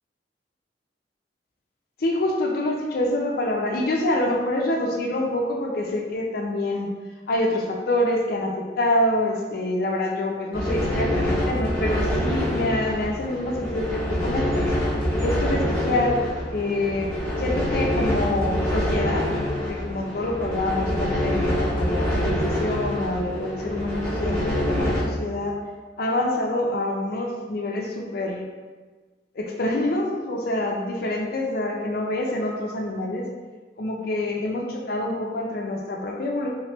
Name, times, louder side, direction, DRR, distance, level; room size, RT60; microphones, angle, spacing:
voice 1, 2.0-6.9 7.3-14.7 15.2-16.2 16.5-17.1 17.4-25.6 26.0-28.4 29.3-33.3 33.8-36.5, left 1 dB, 55° left, 0 dB, 0.5 m, -26 dB
sound 1, 10.5-25.0, left 1 dB, 15° left, 1.0 m, -25 dB
3.6 x 2.9 x 3.2 m, 1.4 s
head